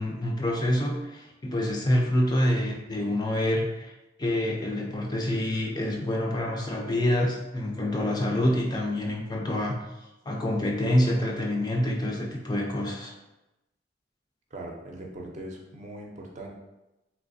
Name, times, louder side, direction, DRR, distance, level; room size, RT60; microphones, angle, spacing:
voice 1, 0.0-3.9 4.2-9.8 10.3-13.1, left 1 dB, 25° left, -1 dB, 0.4 m, -27 dB
voice 2, 14.5-16.5, right 1 dB, 40° right, 0 dB, 0.5 m, -40 dB
3.2 x 3.0 x 2.6 m, 0.98 s
head